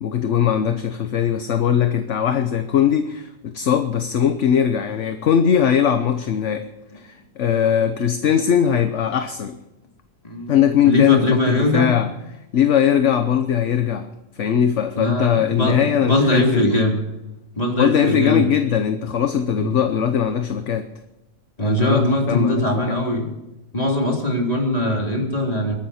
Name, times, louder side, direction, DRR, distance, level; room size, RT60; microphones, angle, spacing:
voice 1, 0.0-6.7 6.9-9.6 10.5-12.1 12.5-14.1 14.4-16.8 17.8-20.9 21.6-23.0, left 8 dB, 55° left, 8 dB, 1.1 m, -20 dB
voice 2, 10.8-11.9 15.0-17.0 17.6-18.5 19.6-19.7 21.6-23.3 23.7-25.8, equal, 25° left, 0 dB, 3.3 m, -21 dB
22.5 x 12.0 x 4.3 m, 0.96 s
omnidirectional pair, 1.6 m